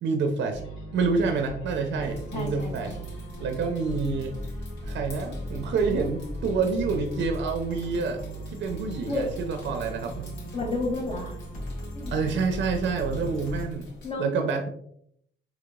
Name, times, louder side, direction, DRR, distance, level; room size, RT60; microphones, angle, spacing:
voice 1, 0.0-0.6 0.9-2.9 3.4-4.3 4.9-10.3 12.1-13.9 14.2-14.7, right 4 dB, 65° right, 5 dB, 0.5 m, -28 dB
sound 1, 0.5-13.7, equal, 90° left, 1.0 m, -37 dB
sound 2, 2.0-14.1, left 1 dB, 60° left, 1.2 m, -48 dB
voice 2, 2.3-3.0 9.1-9.3 10.5-11.3 11.9-12.1 14.0-14.5, left 2 dB, 35° left, -5 dB, 0.9 m, -31 dB
3.9 x 3.0 x 2.3 m, 0.68 s
cardioid pair, 90°, 20 cm